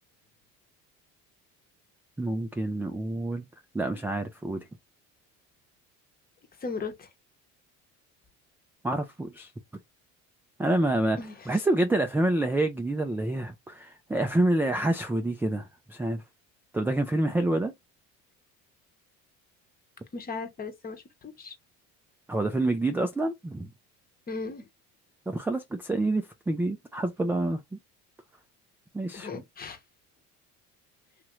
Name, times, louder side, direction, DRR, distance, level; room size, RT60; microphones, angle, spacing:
voice 1, 2.2-3.5 3.7-4.7 8.8-9.5 10.6-11.2 11.5-16.2 16.7-17.7 22.3-23.7 25.3-27.8 28.9-29.4, right 2 dB, 5° right, 0.3 m, -27 dB
voice 2, 6.6-7.1 11.2-11.3 20.1-21.6 24.3-24.7 29.1-29.8, left 4 dB, 25° left, 0.8 m, -37 dB
3.0 x 2.4 x 2.9 m
cardioid pair, 105°, 34 cm